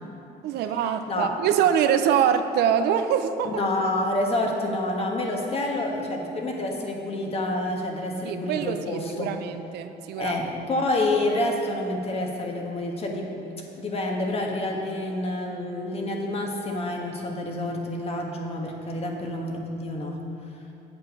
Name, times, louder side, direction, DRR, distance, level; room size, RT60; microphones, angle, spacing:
voice 1, 0.4-3.6 8.2-10.4, right 8 dB, 75° right, 9 dB, 0.6 m, -24 dB
voice 2, 3.4-9.3 10.2-13.5 13.8-20.2, left 1 dB, 35° left, 1 dB, 1.4 m, -28 dB
7.9 x 7.7 x 5.3 m, 2.9 s
cardioid pair, 110°, 17 cm